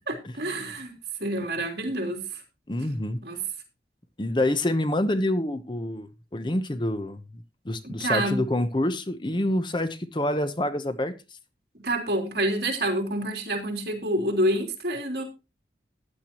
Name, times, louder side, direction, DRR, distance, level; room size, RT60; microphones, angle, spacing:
voice 1, 0.1-0.9 1.2-2.2 3.2-3.4 7.8-8.4 11.8-15.2, right 1 dB, 65° right, 1 dB, 3.2 m, -27 dB
voice 2, 2.7-3.2 4.2-11.1, left 1 dB, 25° left, 11 dB, 0.8 m, -27 dB
15.0 x 10.0 x 3.0 m, 0.27 s
head